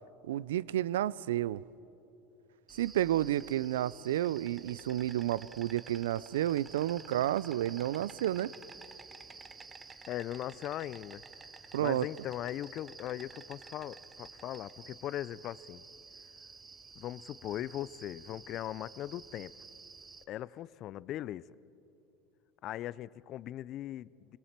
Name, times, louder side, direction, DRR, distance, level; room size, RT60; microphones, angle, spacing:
voice 1, 0.2-1.6 2.8-8.5 11.7-12.1, right 12 dB, 90° right, 0.4 m, -31 dB
Insect, 2.7-20.2, right 4 dB, 20° right, 1.0 m, -52 dB
voice 2, 9.9-11.2 11.6-15.8 17.0-19.5 20.3-21.4 22.6-24.4, left 13 dB, 50° left, 0.4 m, -39 dB
25.0 x 17.5 x 7.4 m
supercardioid pair, 110°, 0 cm